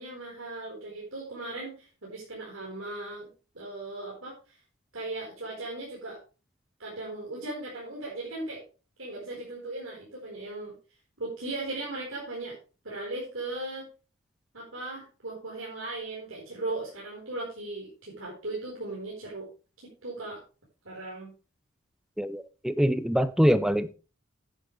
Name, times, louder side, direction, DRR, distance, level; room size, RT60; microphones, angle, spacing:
voice 1, 0.0-3.3 3.5-4.6 4.9-6.2 6.8-8.6 9.0-10.7 11.2-12.5 12.8-13.9 14.5-19.5 20.0-20.4 20.8-21.3, right 2 dB, 70° right, 4.4 m, -37 dB
voice 2, 22.2-23.9, equal, ahead, 0.5 m, -24 dB
10.5 x 9.7 x 3.3 m
head